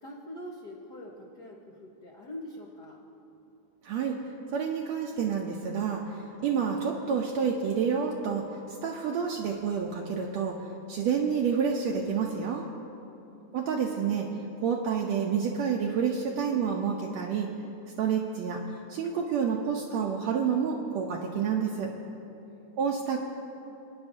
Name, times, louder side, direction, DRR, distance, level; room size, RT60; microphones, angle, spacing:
voice 1, 0.0-3.0 13.2-13.6 22.5-22.9, left 1 dB, 85° left, -3 dB, 0.9 m, -44 dB
voice 2, 3.8-4.2 4.5-8.4 8.8-12.7 13.5-14.3 14.6-17.5 18.0-18.6 18.9-21.9 22.8-23.2, right 6 dB, 75° right, 0 dB, 1.7 m, -29 dB
26.0 x 9.6 x 2.6 m, 2.9 s
omnidirectional pair, 3.5 m